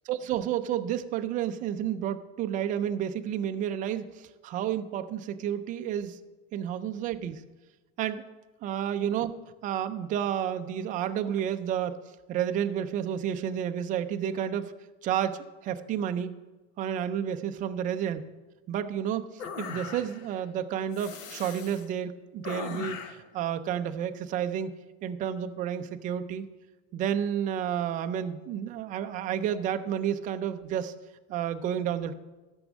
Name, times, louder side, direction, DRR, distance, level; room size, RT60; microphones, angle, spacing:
voice 1, 0.1-6.2 6.5-7.4 8.0-8.2 8.6-9.3 9.6-14.7 15.0-16.3 16.8-18.2 18.7-24.7 25.0-26.5 26.9-30.9 31.3-32.1, right 9 dB, 20° right, 9 dB, 0.3 m, -31 dB
sound 1, 19.4-20.3 20.9-21.9 22.4-23.3, left 7 dB, 90° left, 1.2 m, -39 dB
12.5 x 6.2 x 7.2 m, 1.2 s
supercardioid pair, 150°, 38 cm